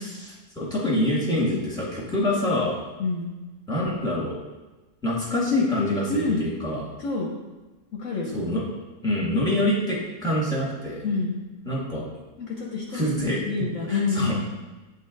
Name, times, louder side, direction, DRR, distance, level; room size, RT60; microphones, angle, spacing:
voice 1, 0.0-2.8 3.7-4.4 5.0-6.9 8.3-8.6 9.0-11.0 11.7-12.1 12.9-13.4 13.9-14.4, left 1 dB, 5° left, -6 dB, 1.7 m, -25 dB
voice 2, 6.1-6.4 7.0-7.3 7.9-8.3 11.0-11.4 12.4-13.1 13.4-14.4, left 3 dB, 60° left, -1 dB, 1.0 m, -27 dB
8.3 x 4.1 x 3.9 m, 1.2 s
omnidirectional pair, 1.7 m